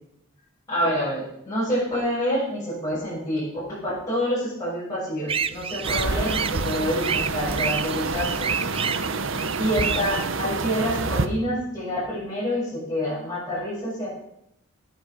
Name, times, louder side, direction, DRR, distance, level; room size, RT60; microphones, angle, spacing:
voice 1, 0.7-8.7 9.6-14.2, equal, 15° left, -10 dB, 7.1 m, -27 dB
sound 1, 5.3-10.3, right 6 dB, 25° right, 0.5 m, -30 dB
sound 2, 5.8-11.3, right 3 dB, 65° right, 1.1 m, -28 dB
20.5 x 8.6 x 5.2 m, 0.79 s
head